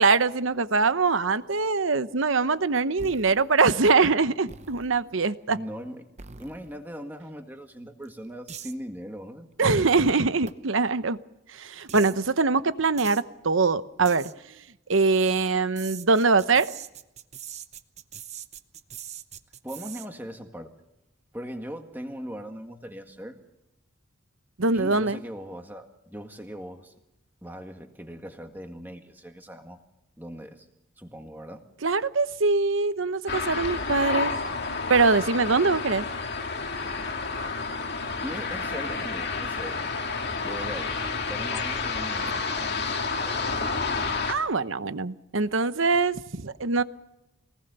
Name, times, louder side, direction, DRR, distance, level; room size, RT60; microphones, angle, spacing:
voice 1, 0.0-5.6 9.6-11.2 11.5-14.3 14.9-16.7 24.6-25.2 31.8-34.4 34.9-36.0 44.3-46.8, right 4 dB, 70° right, 13 dB, 1.0 m, -23 dB
sound 1, 3.0-3.6 4.5-5.0 6.2-6.8 8.0-8.1 8.5-8.7 10.1-10.2 10.5-10.6 11.9-12.2 13.0-13.2 14.1-14.3 15.8-20.1, right 7 dB, 35° right, 0.8 m, -42 dB
voice 2, 5.5-6.1 6.4-9.9 19.6-20.7 21.3-23.4 24.7-26.9 27.4-29.8 30.2-30.7 31.0-31.7 38.2-39.9 40.4-41.0 41.2-43.5, equal, 10° right, 4 dB, 1.9 m, -39 dB
sound 2, 33.3-44.3, left 4 dB, 50° left, 2.1 m, -30 dB
24.5 x 19.5 x 6.9 m, 0.91 s
head